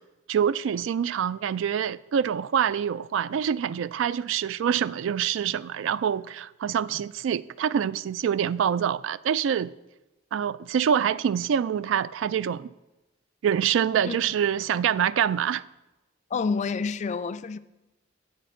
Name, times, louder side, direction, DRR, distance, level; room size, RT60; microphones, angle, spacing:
voice 1, 0.3-9.7 10.3-12.7 13.4-15.7, right 8 dB, 75° right, 0.3 m, -26 dB
voice 2, 16.3-17.6, left 5 dB, 35° left, 0.3 m, -28 dB
7.5 x 6.6 x 7.6 m
head